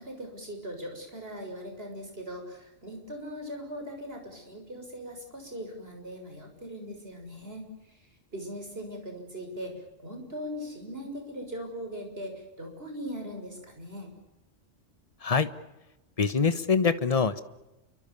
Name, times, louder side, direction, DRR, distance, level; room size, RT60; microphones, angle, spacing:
voice 1, 0.0-7.7 8.3-9.7 10.0-14.1, equal, 50° right, 3 dB, 6.9 m, -40 dB
voice 2, 16.2-17.4, left 5 dB, 30° left, 12 dB, 1.3 m, -24 dB
29.5 x 24.5 x 7.1 m, 0.99 s
omnidirectional pair, 1.3 m